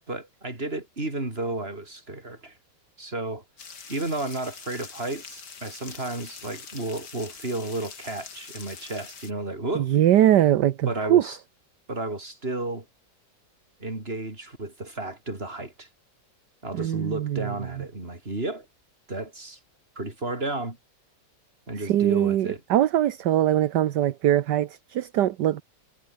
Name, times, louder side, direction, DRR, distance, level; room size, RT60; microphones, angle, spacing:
voice 1, 0.1-2.6 3.0-3.4 3.9-9.9 10.9-11.4 11.9-12.9 13.8-15.9 16.6-18.7 19.1-19.6 20.0-20.8 21.7-22.6, right 2 dB, 30° right, 4.7 m, -32 dB
sound 1, 3.6-9.3, left 5 dB, 65° left, 3.0 m, -44 dB
voice 2, 9.7-11.2 16.7-17.5 21.8-25.6, right 12 dB, 70° right, 1.5 m, -22 dB
omnidirectional pair, 2.0 m